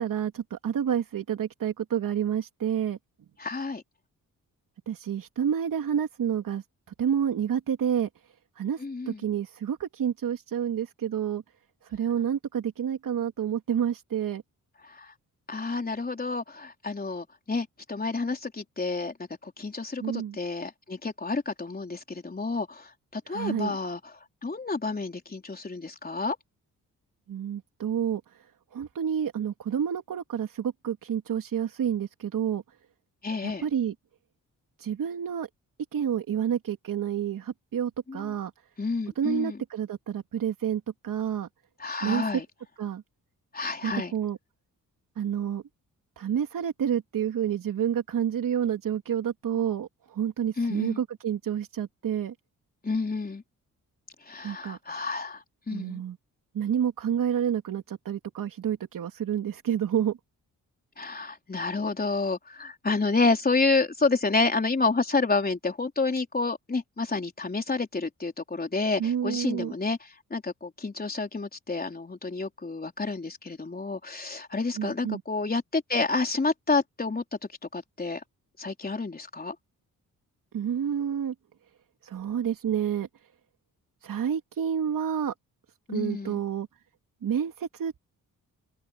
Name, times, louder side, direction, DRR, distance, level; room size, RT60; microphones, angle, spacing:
voice 1, 0.0-3.0 4.9-6.6 7.0-8.1 8.6-11.4 11.9-14.4 20.0-20.4 23.3-23.8 27.3-28.2 28.7-32.6 33.4-33.9 34.8-35.5 35.9-38.5 39.2-41.5 42.0-42.3 42.8-43.0 43.8-44.4 45.2-45.6 46.2-52.3 54.4-54.8 55.7-56.2 56.5-60.2 69.0-69.7 74.8-75.2 80.5-81.3 82.0-83.1 84.0-85.3 85.9-86.7 87.2-88.0, right 9 dB, 75° right, 3.2 m, -29 dB
voice 2, 3.4-3.8 8.8-9.2 14.8-15.1 15.5-19.1 19.4-24.0 24.4-26.4 33.2-33.7 38.1-38.3 38.8-39.6 41.8-42.4 43.5-44.1 50.6-51.0 52.8-53.4 54.3-56.0 61.0-77.2 77.7-78.2 78.6-79.6 85.9-86.4, left 3 dB, 25° left, 4.3 m, -29 dB
open air
cardioid pair, 80°, 33 cm